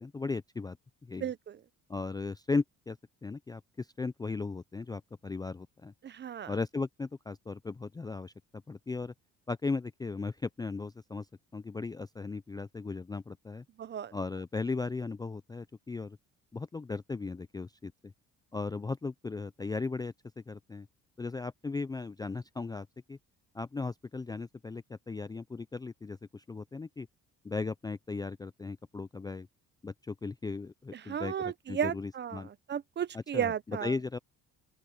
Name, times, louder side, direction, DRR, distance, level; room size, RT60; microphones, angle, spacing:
voice 1, 0.0-0.8 1.0-1.3 1.9-5.9 6.5-9.1 9.5-11.3 11.5-13.6 14.1-16.2 16.5-18.1 18.5-20.9 21.2-23.2 23.5-27.1 27.4-29.5 29.8-32.5 33.1-34.2, left 4 dB, 15° left, 0.4 m, -37 dB
voice 2, 1.2-1.6 6.0-6.5 13.8-14.1 31.1-32.4 32.7-33.9, right 9 dB, 35° right, 0.7 m, -34 dB
open air
cardioid pair, 115°, 31 cm